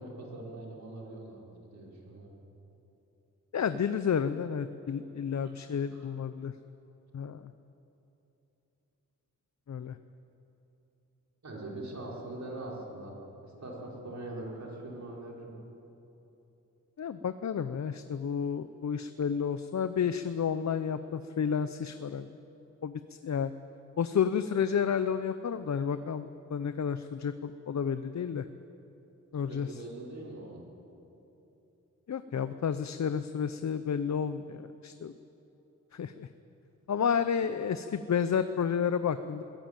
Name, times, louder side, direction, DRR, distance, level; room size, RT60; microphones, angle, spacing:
voice 1, 0.0-2.3 5.4-5.5 5.9-6.1 11.4-13.2 13.4-15.5 29.5-30.6, right 2 dB, 60° right, -2 dB, 4.9 m, -42 dB
voice 2, 3.5-6.5 7.1-7.5 9.7-10.0 17.0-22.3 22.8-23.5 24.0-28.4 29.3-29.8 32.1-35.1 35.9-36.3 36.9-39.4, left 7 dB, 60° left, 11 dB, 0.7 m, -31 dB
21.5 x 17.0 x 9.0 m, 3.0 s
wide cardioid pair, 90°, 32 cm